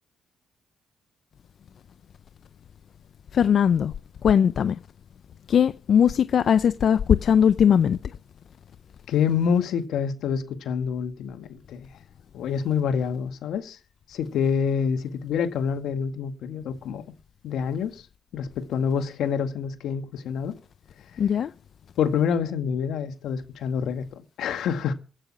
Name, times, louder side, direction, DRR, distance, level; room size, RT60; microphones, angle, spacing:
voice 1, 3.3-3.9 4.2-4.8 5.5-8.0 21.2-21.5, left 8 dB, 60° left, 0.6 m, -19 dB
voice 2, 9.1-11.9 12.3-13.8 14.1-17.0 17.4-18.0 18.3-20.5 22.0-24.9, left 7 dB, 75° left, 2.0 m, -27 dB
16.0 x 9.0 x 6.2 m
cardioid pair, 90°, 0 cm